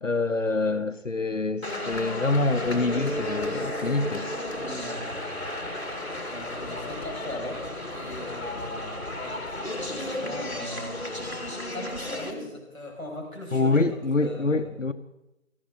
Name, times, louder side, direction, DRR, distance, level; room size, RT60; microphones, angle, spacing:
voice 1, 0.0-4.3 13.5-14.9, left 3 dB, 70° left, 0.9 m, -26 dB
sound 1, 1.6-12.3, left 1 dB, 50° left, 2.0 m, -34 dB
Mallet percussion, 2.9-7.3, right 2 dB, 80° right, 2.2 m, -40 dB
voice 2, 4.6-5.7 6.3-13.9 14.2-14.7, left 1 dB, ahead, 5.3 m, -40 dB
18.5 x 14.5 x 4.1 m
figure-of-eight pair, 180°, 40 cm